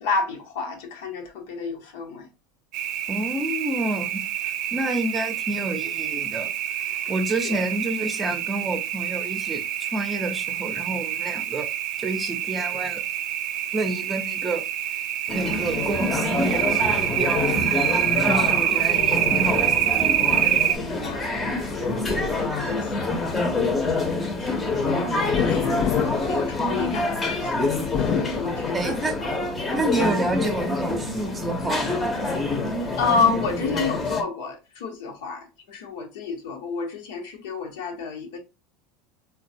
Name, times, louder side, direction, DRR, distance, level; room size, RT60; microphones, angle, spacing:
voice 1, 0.0-2.3 6.8-7.1 7.4-7.7 18.3-18.8 20.8-24.5 24.9-27.7 28.1-28.8 29.2-29.3 33.0-38.4, left 4 dB, 85° left, 0.9 m, -30 dB
sound 1, 2.7-20.8, right 11 dB, 60° right, 0.4 m, -26 dB
voice 2, 3.1-6.5 7.1-11.7 12.0-13.0 13.7-14.6 15.3-17.6 18.2-19.9 28.7-29.2 29.7-32.1, right 2 dB, 20° right, 0.6 m, -29 dB
sound 2, 15.3-34.2, left 2 dB, 20° left, 0.7 m, -26 dB
sound 3, 25.3-27.2 27.8-29.1 29.6-30.5, left 8 dB, 55° left, 0.4 m, -29 dB
3.9 x 2.3 x 2.6 m
supercardioid pair, 120°, 0 cm